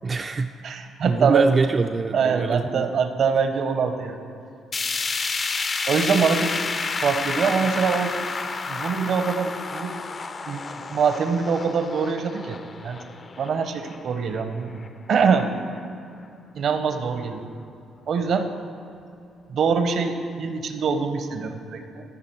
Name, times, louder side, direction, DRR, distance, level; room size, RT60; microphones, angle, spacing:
voice 1, 0.0-0.5 1.0-3.0 5.0-5.2, right 4 dB, 35° right, 6 dB, 0.3 m, -25 dB
voice 2, 0.6-1.5 2.1-4.2 5.9-6.5 7.0-8.1 8.7-10.0 10.4-10.6 10.9-12.6 12.8-13.0 13.4-14.8 15.1-15.5 16.5-17.5 18.1-18.5 19.5-22.0, right 5 dB, 65° right, 8 dB, 0.7 m, -23 dB
sound 1, 4.7-14.9 15.3-15.4 15.8-15.9 16.7-16.8, left 4 dB, 40° left, 0.5 m, -30 dB
14.0 x 5.0 x 4.5 m, 2.5 s
cardioid pair, 90°, 0 cm